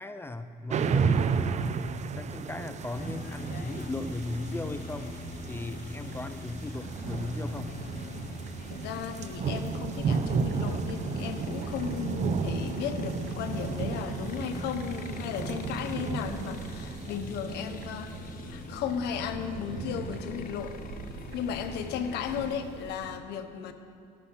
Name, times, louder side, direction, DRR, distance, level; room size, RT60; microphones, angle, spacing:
voice 1, 0.0-1.4 2.1-5.2 5.5-7.8, left 2 dB, 15° left, 10 dB, 0.6 m, -37 dB
sound 1, 0.7-18.5, right 5 dB, 45° right, 0.7 m, -33 dB
sound 2, 2.9-22.6, left 3 dB, 55° left, 0.8 m, -42 dB
sound 3, 3.5-23.2, right 7 dB, 80° right, 0.7 m, -47 dB
voice 2, 8.7-18.1 18.5-20.8 21.3-23.7, left 7 dB, 80° left, 8 dB, 1.2 m, -35 dB
14.0 x 11.5 x 5.6 m, 2.6 s
cardioid pair, 110°, 17 cm